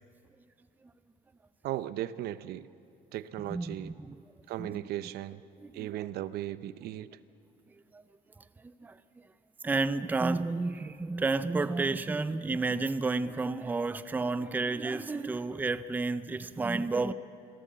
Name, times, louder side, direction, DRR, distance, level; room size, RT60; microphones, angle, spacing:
voice 1, 1.6-2.7 3.1-3.9 4.5-5.4 5.7-7.1, right 13 dB, 75° right, 0.7 m, -36 dB
voice 2, 3.5-4.2 4.6-4.8 5.6-6.1 7.9-8.0 8.4-9.0 9.6-17.1, right 3 dB, 10° right, 0.5 m, -31 dB
26.5 x 16.5 x 7.5 m
cardioid pair, 145°, 17 cm